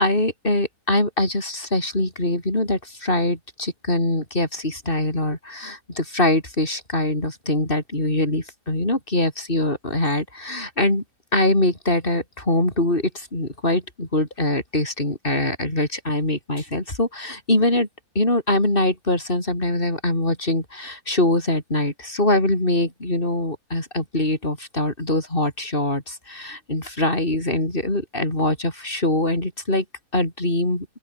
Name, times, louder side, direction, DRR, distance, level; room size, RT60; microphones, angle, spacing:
voice 1, 0.0-11.0 11.3-17.9 18.1-29.8 30.1-30.9, left 1 dB, 30° left, 6.3 m, -23 dB
open air
omnidirectional pair, 1.8 m